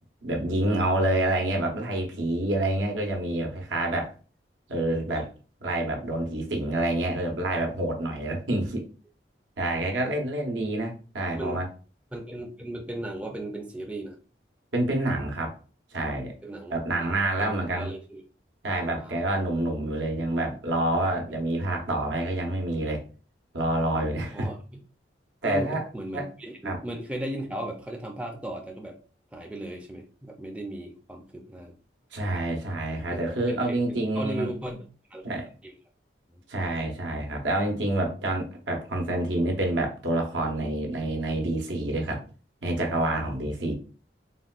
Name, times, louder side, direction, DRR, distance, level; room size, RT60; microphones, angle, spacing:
voice 1, 0.2-4.1 4.7-5.3 5.6-8.8 9.6-11.7 14.7-15.5 15.9-16.3 16.7-17.9 18.6-23.0 23.5-24.5 25.4-25.8 26.1-26.3 26.6-26.8 32.1-34.5 35.2-35.5 36.5-42.2 42.6-43.7, right 1 dB, 85° right, 2 dB, 0.8 m, -27 dB
voice 2, 11.3-11.6 12.1-14.2 16.4-18.2 19.0-19.3 24.3-24.6 25.4-29.0 29.3-31.8 33.1-34.8 35.1-35.2 35.6-35.7 36.3-36.4, right 1 dB, 5° right, 1 dB, 0.4 m, -36 dB
3.6 x 2.2 x 2.3 m, 0.37 s
head